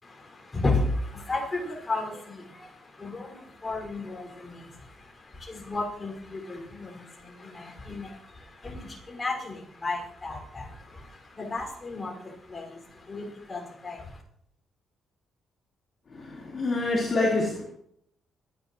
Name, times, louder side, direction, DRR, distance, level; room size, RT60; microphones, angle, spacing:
voice 1, 0.0-14.2, left 2 dB, 25° left, 1 dB, 5.7 m, -34 dB
voice 2, 16.1-17.6, left 2 dB, 45° left, -5 dB, 4.1 m, -26 dB
26.0 x 11.0 x 3.2 m, 0.70 s
cardioid pair, 90°, 0 cm